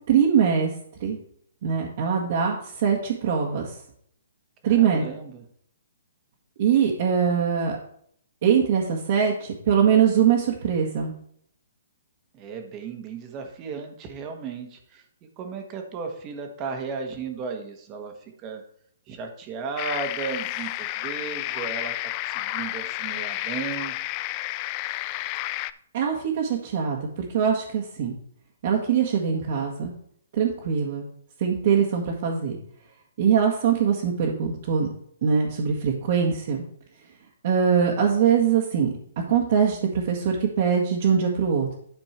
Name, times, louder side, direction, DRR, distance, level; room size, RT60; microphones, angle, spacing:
voice 1, 0.1-0.7 1.0-1.2 1.6-3.7 4.6-5.0 6.6-7.8 8.4-11.1 25.9-28.1 28.6-29.9 30.3-31.1 31.4-32.6 33.2-34.9 35.2-36.6 37.4-38.9 39.3-41.7, right 7 dB, 45° right, -2 dB, 1.7 m, -22 dB
voice 2, 4.6-5.4 12.3-15.0 15.4-18.6 19.1-21.9 22.2-23.9, right 5 dB, 20° right, 4 dB, 1.5 m, -35 dB
sound 1, 19.8-25.7, left 17 dB, 25° left, 0.3 m, -31 dB
12.0 x 4.5 x 4.4 m, 0.64 s
hypercardioid pair, 160°, 0 cm